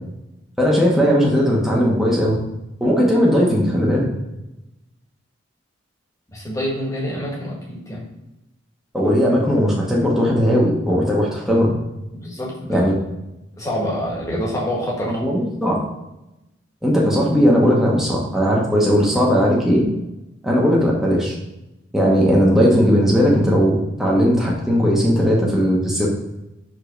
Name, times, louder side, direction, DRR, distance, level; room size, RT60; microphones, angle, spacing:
voice 1, 0.6-2.3 2.8-4.1 8.9-11.7 12.7-12.9 15.0-15.8 16.8-19.8 20.4-21.3 21.9-26.1, equal, ahead, -4 dB, 1.0 m, -17 dB
voice 2, 6.3-8.1 12.1-12.9 13.6-15.2, equal, 15° left, -4 dB, 1.4 m, -26 dB
5.0 x 3.8 x 5.0 m, 0.94 s
head